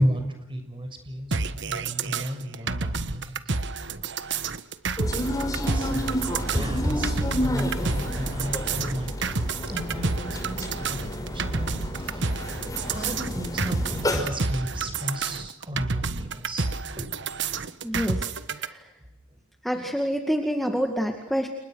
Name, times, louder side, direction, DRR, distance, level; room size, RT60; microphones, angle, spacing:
voice 1, 0.0-3.5 5.2-6.2 6.5-11.7 12.0-12.3 12.7-16.7 17.0-17.1 19.7-19.9, equal, 25° right, 6 dB, 6.7 m, -32 dB
sound 1, 1.3-18.7, right 4 dB, 60° right, 1.4 m, -30 dB
sound 2, 5.0-14.2, equal, 20° left, 5.9 m, -30 dB
voice 2, 17.8-18.9 19.6-21.5, equal, ahead, 4 dB, 2.1 m, -28 dB
30.0 x 30.0 x 6.5 m, 0.87 s
head